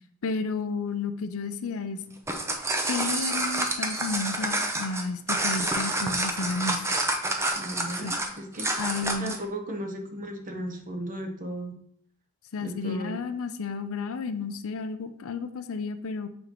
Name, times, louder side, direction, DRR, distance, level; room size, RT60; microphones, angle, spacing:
voice 1, 0.2-2.0 2.9-6.9 8.0-8.1 8.8-9.3 12.5-16.3, left 4 dB, 65° left, 10 dB, 0.5 m, -32 dB
sound 1, 2.1-9.4, right 2 dB, 10° right, 0.6 m, -28 dB
voice 2, 7.5-11.7 12.6-13.2, right 1 dB, 40° right, 4 dB, 0.9 m, -36 dB
6.7 x 5.2 x 3.0 m, 0.66 s
head